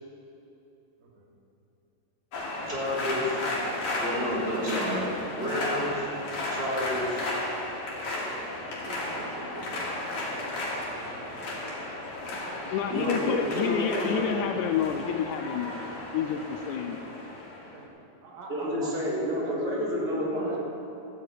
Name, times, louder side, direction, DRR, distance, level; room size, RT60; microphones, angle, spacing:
voice 1, 1.0-1.3 4.2-5.0 6.1-6.3 8.8-11.6 12.3-13.0 17.6-17.9 18.2-19.6 20.2-20.6, right 3 dB, 70° right, 0 dB, 3.4 m, -44 dB
sound 1, 2.3-17.8, left 1 dB, 55° left, 3.3 m, -34 dB
voice 2, 2.7-3.5 4.0-5.0 5.3-6.1 6.5-7.3 12.9-14.4 18.5-20.5, equal, 15° right, -8 dB, 3.4 m, -30 dB
voice 3, 12.7-16.4 16.7-17.0, left 8 dB, 85° left, 5 dB, 1.8 m, -29 dB
13.5 x 6.5 x 8.3 m, 3.0 s
omnidirectional pair, 4.2 m